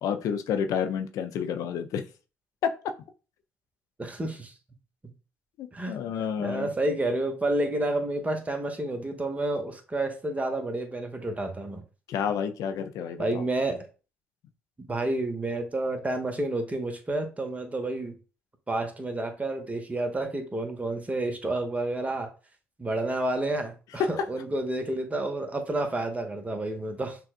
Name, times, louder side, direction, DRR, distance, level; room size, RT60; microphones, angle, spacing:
voice 1, 0.0-2.0 2.6-2.7 5.6-6.7 12.1-13.4, left 7 dB, 65° left, 8 dB, 0.5 m, -30 dB
voice 2, 4.0-4.5 5.7-6.0 6.4-11.8 13.2-13.9 14.9-18.2 18.7-22.3 22.8-27.2, right 2 dB, 20° right, 5 dB, 1.1 m, -30 dB
5.9 x 2.3 x 2.4 m, 0.33 s
hypercardioid pair, 50°, 6 cm